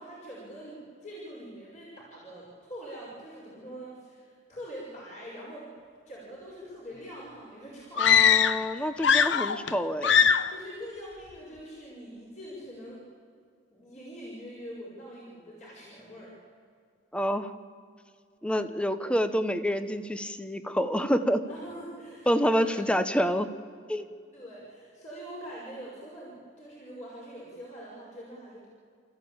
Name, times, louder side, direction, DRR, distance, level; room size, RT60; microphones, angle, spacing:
voice 1, 0.0-5.7 6.1-8.3 9.1-9.5 10.5-13.0 13.7-16.3 21.5-22.8 24.3-28.7, equal, 40° left, -5 dB, 5.6 m, -44 dB
sound 1, 8.0-8.7 9.0-9.7 10.0-10.6, left 7 dB, 80° left, 0.8 m, -21 dB
voice 2, 8.0-10.3 17.1-17.5 18.4-21.4 22.3-23.5 23.9-24.1, equal, 5° left, 10 dB, 0.8 m, -27 dB
30.0 x 14.5 x 8.7 m, 2.3 s
head